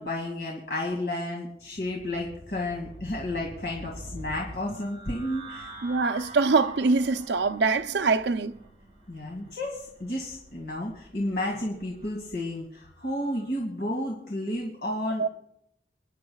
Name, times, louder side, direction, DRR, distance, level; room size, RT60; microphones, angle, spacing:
voice 1, 0.0-5.7 9.1-15.3, left 1 dB, 65° left, 2.2 m, -32 dB
sound 1, 1.6-13.5, right 1 dB, 30° right, 5.6 m, -46 dB
voice 2, 5.8-8.5 15.2-15.3, right 4 dB, 85° right, 0.6 m, -24 dB
27.0 x 10.5 x 2.4 m
head